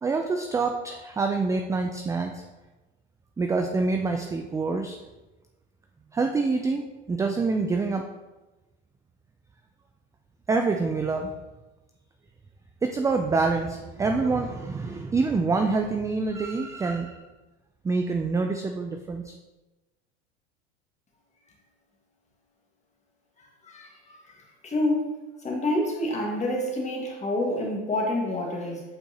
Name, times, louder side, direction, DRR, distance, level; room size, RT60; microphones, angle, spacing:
voice 1, 0.0-2.4 3.4-5.0 6.1-8.0 10.5-11.3 12.8-17.2 17.8-19.3, right 4 dB, 10° right, 4 dB, 0.4 m, -26 dB
voice 2, 23.6-24.2 24.6-25.1 25.4-28.8, left 1 dB, 20° left, -1 dB, 1.7 m, -27 dB
8.3 x 4.5 x 2.9 m, 1.1 s
hypercardioid pair, 100°, 31 cm